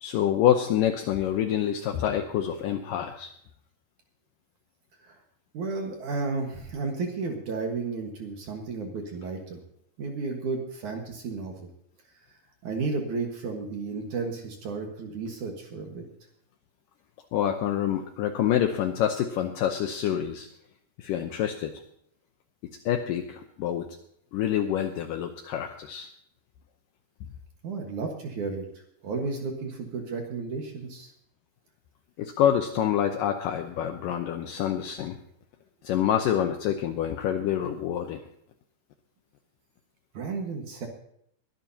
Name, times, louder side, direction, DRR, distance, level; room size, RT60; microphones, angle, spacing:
voice 1, 0.0-3.3 17.3-20.5 21.0-21.7 22.9-23.9 24.3-26.1 32.2-35.2 35.8-38.2, left 10 dB, 85° left, 5 dB, 1.9 m, -27 dB
voice 2, 5.5-9.6 10.0-11.7 12.6-16.0 27.6-28.7 29.0-31.1 40.1-40.9, right 4 dB, 55° right, 2 dB, 2.5 m, -33 dB
22.0 x 12.0 x 2.8 m, 0.69 s
omnidirectional pair, 4.9 m